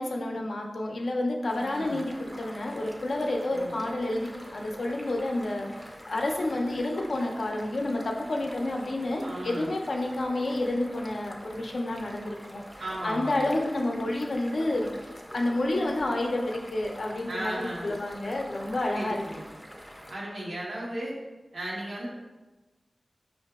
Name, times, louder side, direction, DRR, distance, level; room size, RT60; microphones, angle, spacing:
voice 1, 0.0-5.7 6.1-12.6 13.0-14.9 15.3-19.2, left 1 dB, 80° left, 1 dB, 0.5 m, -29 dB
sound 1, 1.5-20.2, equal, 5° right, 0.5 m, -45 dB
voice 2, 1.6-2.0 3.5-3.7 9.2-9.7 12.8-13.5 17.3-18.0 18.9-19.4 20.1-21.2 21.5-22.1, right 1 dB, 85° right, -5 dB, 1.0 m, -36 dB
5.7 x 2.5 x 2.3 m, 1.1 s
wide cardioid pair, 75°, 0 cm